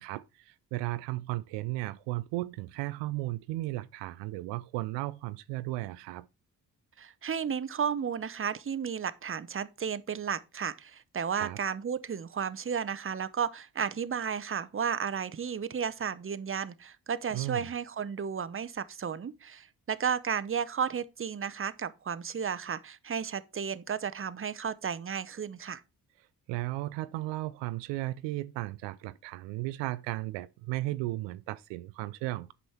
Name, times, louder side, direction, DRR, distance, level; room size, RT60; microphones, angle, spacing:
voice 1, 0.0-6.3 11.3-11.6 17.3-17.7 26.5-32.5, right 18 dB, 80° right, 0.5 m, -35 dB
voice 2, 7.0-25.8, right 7 dB, 30° right, 0.8 m, -33 dB
8.1 x 5.3 x 4.4 m
hypercardioid pair, 45°, 43 cm